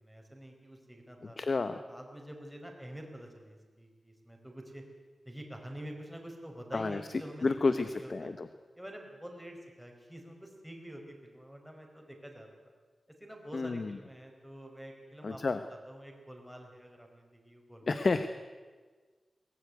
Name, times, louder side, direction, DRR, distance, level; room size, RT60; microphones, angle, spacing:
voice 1, 0.0-1.4 1.7-4.8 5.2-8.3 8.7-12.7 13.2-15.4 15.8-18.1, right 1 dB, ahead, 2 dB, 4.5 m, -47 dB
voice 2, 1.4-1.8 6.7-7.0 7.4-8.5 13.5-14.0 15.2-15.6 17.9-18.3, left 3 dB, 45° left, 10 dB, 1.0 m, -30 dB
22.5 x 18.0 x 9.6 m, 1.4 s
wide cardioid pair, 120°, 0 cm